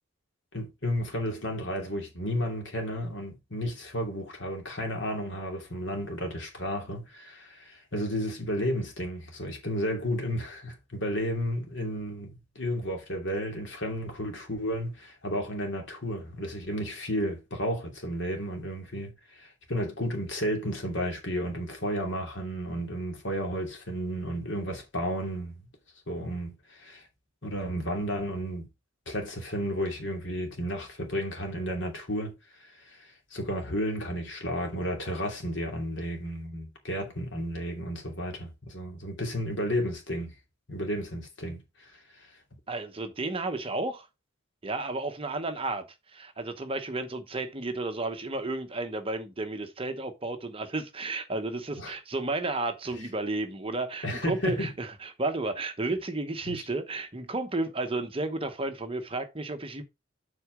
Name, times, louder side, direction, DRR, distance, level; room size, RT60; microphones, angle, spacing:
voice 1, 0.5-25.6 26.1-27.0 27.4-28.7 29.1-32.3 32.6-40.3 40.7-41.6 41.9-42.3 51.8-51.9 54.0-54.7 56.5-56.7, equal, 60° left, 2.8 m, -32 dB
voice 2, 42.7-44.1 44.6-45.8 46.1-59.8, right 2 dB, 25° right, 1.0 m, -32 dB
7.9 x 4.7 x 5.0 m
head